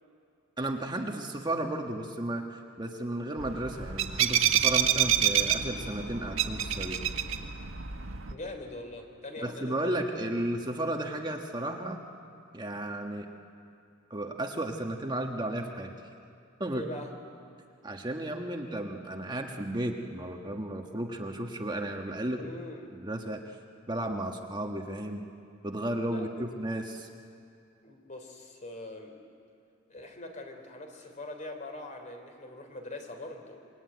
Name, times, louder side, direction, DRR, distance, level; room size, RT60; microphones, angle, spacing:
voice 1, 0.6-7.0 9.4-12.0 12.5-13.3 14.1-15.9 16.6-16.8 17.8-22.4 23.0-23.6 23.9-25.2 25.6-27.1, right 1 dB, 20° right, 2 dB, 1.4 m, -34 dB
sound 1, 3.4-8.3, right 9 dB, 80° right, 1.5 m, -28 dB
voice 2, 8.3-10.3 16.7-17.1 22.3-22.9 26.1-26.5 27.8-29.2 29.9-33.7, left 2 dB, 40° left, 4 dB, 3.5 m, -42 dB
26.0 x 22.5 x 9.5 m, 2.4 s
head